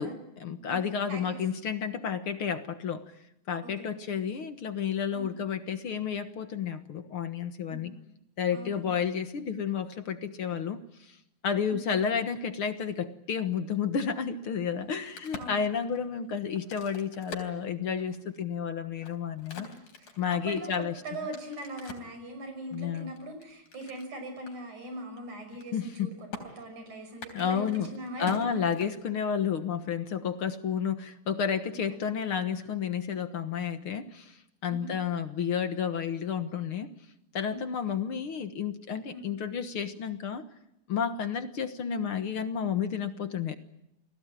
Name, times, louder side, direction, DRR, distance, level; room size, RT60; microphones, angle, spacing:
voice 1, 0.0-3.0 3.5-7.9 8.4-11.1 11.4-19.7 20.2-20.9 22.7-23.1 25.7-26.1 27.3-27.9 28.2-34.4 34.6-36.9 37.3-40.5 40.9-43.6, left 7 dB, 55° left, 9 dB, 1.9 m, -31 dB
voice 2, 0.7-1.4 3.6-3.9 5.1-5.3 7.7-7.9 8.5-8.9 11.6-11.9 15.4-15.7 19.5-20.7 21.0-26.1 26.6-28.6 31.9-32.1 34.7-34.9 37.5-37.7 39.1-39.3, right 1 dB, 80° right, 6 dB, 7.4 m, -41 dB
Crack, 14.8-18.3 18.8-22.2 22.7-24.1 24.5-24.6 24.8-25.2 25.5-26.0 26.3-26.4 27.1-29.3, left 3 dB, 85° left, 5.0 m, -45 dB
30.0 x 20.0 x 9.1 m, 0.82 s
omnidirectional pair, 3.4 m